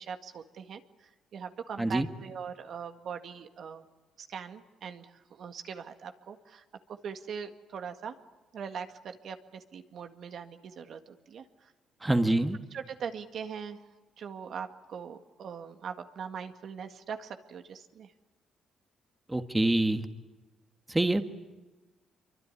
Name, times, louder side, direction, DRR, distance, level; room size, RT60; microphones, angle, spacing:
voice 1, 0.0-3.9 4.2-8.2 8.5-11.7 12.7-13.8 14.2-18.1, right 7 dB, 65° right, 7 dB, 1.8 m, -41 dB
voice 2, 12.0-12.6 19.3-20.1 20.9-21.2, right 1 dB, 15° right, 8 dB, 1.6 m, -26 dB
25.5 x 24.0 x 9.8 m, 1.2 s
cardioid pair, 90°, 0 cm